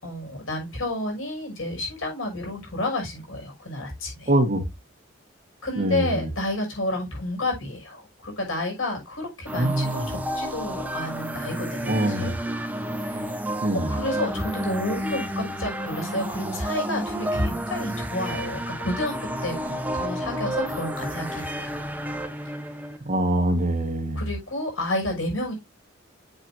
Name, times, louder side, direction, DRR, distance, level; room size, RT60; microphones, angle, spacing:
voice 1, 0.0-4.3 5.6-12.3 13.0-13.3 13.7-19.1 19.4-21.8 24.1-25.5, left 1 dB, 90° left, 6.1 m, -30 dB
voice 2, 4.3-4.6 5.8-6.3 9.6-10.1 11.9-12.3 13.6-14.0 23.1-24.2, right 1 dB, 40° right, 1.8 m, -24 dB
sound 1, 9.5-23.0, equal, 10° right, 1.0 m, -31 dB
8.0 x 7.6 x 2.7 m
head